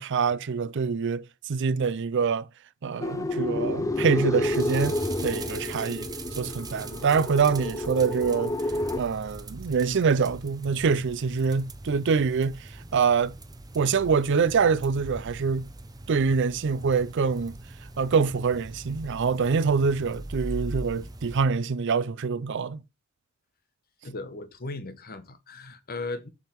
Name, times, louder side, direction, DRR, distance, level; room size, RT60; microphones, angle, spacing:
voice 1, 0.0-2.5 2.8-6.1 6.4-8.5 9.0-12.6 12.9-13.3 13.7-15.7 16.1-17.6 18.0-22.8, right 5 dB, 60° right, 0.5 m, -25 dB
sound 1, 3.0-9.0, left 1 dB, 15° left, 0.4 m, -30 dB
sound 2, 4.4-21.4, right 2 dB, 20° right, 0.7 m, -41 dB
voice 2, 24.0-26.3, left 3 dB, 45° left, 1.0 m, -37 dB
7.4 x 3.6 x 5.8 m
head